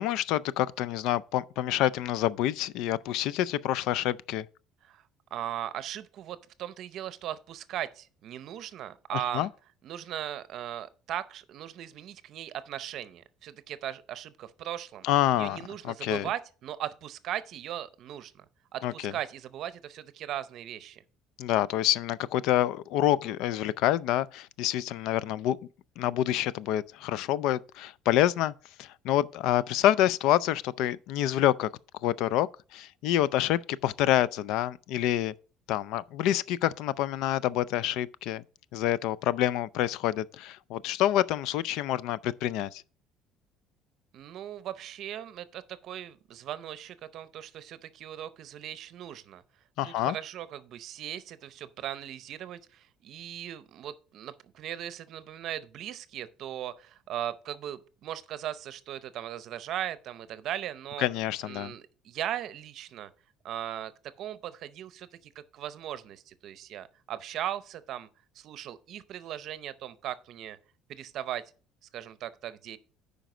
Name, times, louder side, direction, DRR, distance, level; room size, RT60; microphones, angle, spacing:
voice 1, 0.0-4.5 9.3-9.5 15.0-15.6 15.8-16.3 18.8-19.1 21.4-25.6 26.0-28.5 28.8-31.7 32.0-35.3 35.7-38.4 38.7-42.8 49.8-50.2 61.0-61.7, left 12 dB, 70° left, 0.3 m, -27 dB
voice 2, 5.3-9.5 9.8-15.1 15.4-18.5 18.7-21.0 44.1-49.4 49.8-61.1 61.4-63.1 63.4-63.9 64.2-68.1 68.3-70.6 70.9-71.4 71.9-72.8, right 11 dB, 50° right, 0.6 m, -38 dB
9.1 x 5.1 x 4.9 m
cardioid pair, 160°, 0 cm